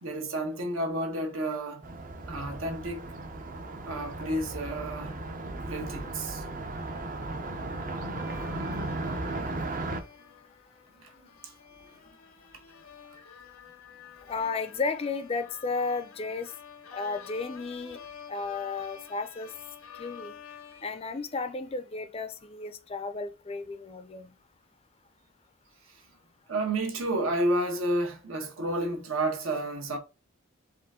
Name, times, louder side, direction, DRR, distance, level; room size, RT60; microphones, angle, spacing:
voice 1, 0.0-1.8 2.3-3.0 3.9-5.1 5.6-6.4 11.0-11.1 11.4-11.5 26.5-30.0, right 1 dB, 70° right, 1.2 m, -30 dB
Car passing by, 1.8-10.0, right 2 dB, 40° right, 0.6 m, -36 dB
sound 1, 8.1-21.8, left 7 dB, 80° left, 0.7 m, -49 dB
voice 2, 14.3-16.5 16.9-18.0 18.3-19.5 20.0-20.3 20.8-24.3, left 4 dB, 25° left, 0.4 m, -33 dB
4.8 x 2.6 x 3.6 m
head